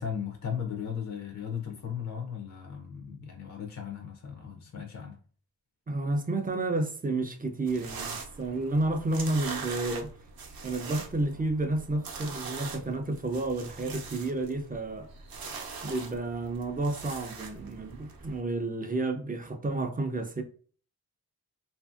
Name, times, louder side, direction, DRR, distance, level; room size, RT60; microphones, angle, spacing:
voice 1, 0.0-5.2, left 7 dB, 45° left, 0.5 m, -36 dB
voice 2, 5.9-10.1 10.6-15.1 15.5-20.4, right 2 dB, 25° right, 0.4 m, -31 dB
sound 1, 7.7-18.4, right 4 dB, 65° right, 0.6 m, -42 dB
2.7 x 2.5 x 2.3 m
wide cardioid pair, 115°, 39 cm